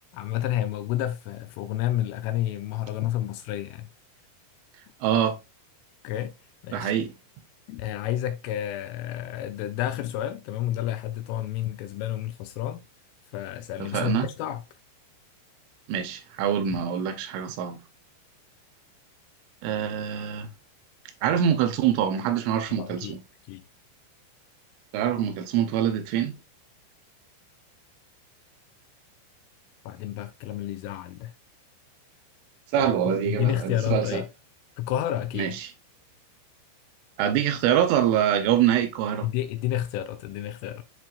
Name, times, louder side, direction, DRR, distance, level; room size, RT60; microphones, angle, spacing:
voice 1, 0.1-3.9 6.0-6.3 6.6-6.9 7.7-12.8 13.3-14.6 16.7-16.8 22.8-23.2 23.5-23.6 29.9-31.3 32.8-34.3 34.8-35.6 39.2-40.8, left 12 dB, 85° left, 2.9 m, -30 dB
voice 2, 5.0-5.4 6.7-7.1 13.8-14.3 15.9-17.8 19.6-20.5 21.2-23.2 24.9-26.4 32.7-34.2 35.4-35.7 37.2-39.3, right 9 dB, 80° right, 3.0 m, -25 dB
10.5 x 4.0 x 2.4 m
omnidirectional pair, 6.0 m